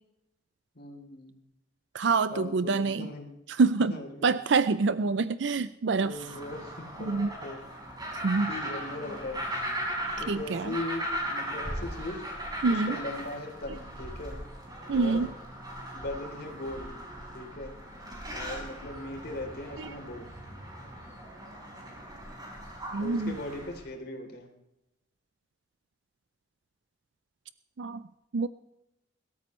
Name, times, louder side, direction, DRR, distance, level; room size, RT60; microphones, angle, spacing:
voice 1, 0.7-1.4 2.3-3.3 3.9-4.4 6.0-7.1 7.4-7.6 8.5-9.4 10.2-12.2 12.6-14.4 14.9-15.3 15.9-16.9 17.3-17.7 18.3-20.3 23.0-24.5, left 2 dB, 60° left, 2 dB, 3.4 m, -39 dB
voice 2, 1.9-3.1 3.5-4.0 4.2-6.1 7.0-7.3 8.2-8.5 10.3-10.7 12.6-13.0 14.9-15.3 19.8-19.9 22.9-23.4 27.8-28.0 28.3-28.5, right 4 dB, 70° right, 14 dB, 0.5 m, -26 dB
sound 1, 6.1-23.8, equal, 25° right, 4.7 m, -38 dB
22.0 x 13.5 x 3.2 m, 0.88 s
head